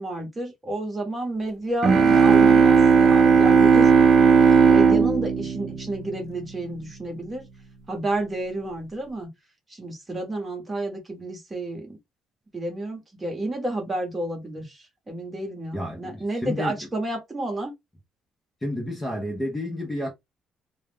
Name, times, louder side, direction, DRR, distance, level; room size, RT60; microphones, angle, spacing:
voice 1, 0.0-3.9 4.6-7.4 7.9-9.3 9.7-12.0 12.5-17.7, right 2 dB, 15° right, 0.9 m, -30 dB
sound 1, 1.8-6.5, right 6 dB, 35° right, 0.4 m, -16 dB
voice 2, 15.7-16.9 18.6-20.1, left 1 dB, 10° left, 0.5 m, -30 dB
2.3 x 2.0 x 3.3 m
cardioid pair, 170°, 0 cm